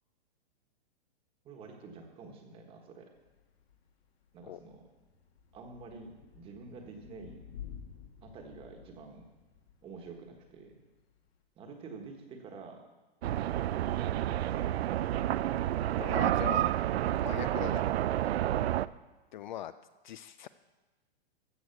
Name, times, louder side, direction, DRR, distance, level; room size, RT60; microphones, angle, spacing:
voice 1, 1.4-3.1 4.3-4.8 5.5-7.4 8.2-9.3 9.8-10.7 11.6-12.8 20.4-20.5, right 4 dB, 20° right, 4 dB, 1.3 m, -49 dB
Thunder / Rain, 3.1-11.4, left 8 dB, 80° left, 2.1 m, -52 dB
sound 1, 13.2-18.9, right 12 dB, 80° right, 0.5 m, -30 dB
voice 2, 16.0-16.8 17.2-17.8 19.3-19.7 20.0-20.5, left 11 dB, 50° left, 13 dB, 0.4 m, -40 dB
14.5 x 6.5 x 6.9 m, 1.2 s
hypercardioid pair, 160°, 31 cm